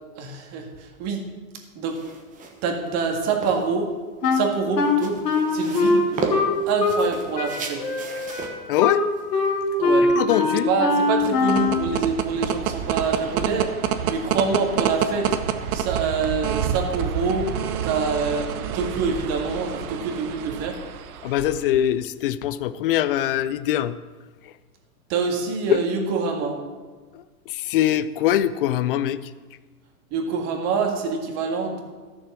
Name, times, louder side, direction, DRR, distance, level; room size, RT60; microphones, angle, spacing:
voice 1, 0.2-1.3 1.8-2.0 2.6-3.9 4.3-5.2 5.5-7.9 9.8-10.1 10.5-13.7 14.0-15.3 15.7-17.6 17.8-20.8 25.1-26.6 30.1-31.8, right 5 dB, 35° right, 3 dB, 1.9 m, -26 dB
sound 1, 1.8-10.4, right 4 dB, 15° right, 1.2 m, -36 dB
Wind instrument woodwind instrument, 4.2-7.1 7.4-11.9, left 3 dB, 90° left, 1.9 m, -22 dB
voice 2, 8.7-9.1 10.2-10.7 21.2-23.9 25.7-25.8 27.1-27.2 27.5-29.2, left 12 dB, 40° left, 15 dB, 0.4 m, -22 dB
sound 2, 11.1-21.9, right 8 dB, 65° right, 1.1 m, -28 dB
13.5 x 6.9 x 6.2 m, 1.4 s
hypercardioid pair, 140°, 46 cm